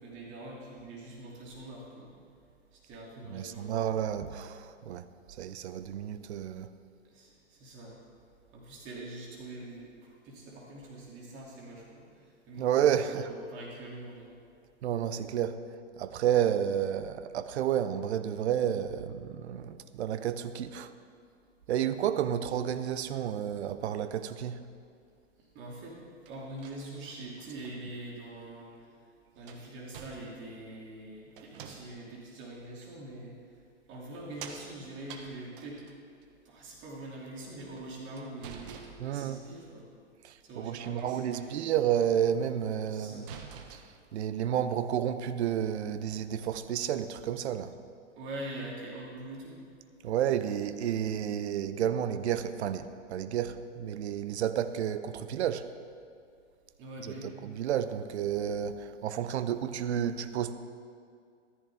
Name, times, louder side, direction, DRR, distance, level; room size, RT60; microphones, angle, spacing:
voice 1, 0.0-2.1 2.7-4.1 7.1-8.0 8.5-12.0 12.5-12.7 13.0-14.3 25.5-26.0 26.3-28.7 29.3-33.4 33.9-35.8 36.4-39.9 40.4-41.7 42.9-43.3 48.2-49.6 56.8-57.4, right 1 dB, 30° right, -3 dB, 2.7 m, -44 dB
voice 2, 3.3-5.1 5.4-6.7 12.6-13.3 14.8-15.6 16.0-20.9 21.7-24.6 39.0-39.4 40.2-43.3 43.7-43.8 44.1-47.7 50.0-55.7 57.0-57.1 57.4-60.5, right 9 dB, 65° right, 12 dB, 0.8 m, -31 dB
sound 1, 26.3-27.9 28.7-28.8 29.4-30.6 31.3-32.2 32.8-32.9 33.9-36.2 37.4-39.5 40.7-41.6 41.9-42.2 42.6-42.7 43.1-44.2, right 7 dB, 45° right, 1.3 m, -49 dB
14.0 x 13.5 x 3.6 m, 2.3 s
hypercardioid pair, 130°, 37 cm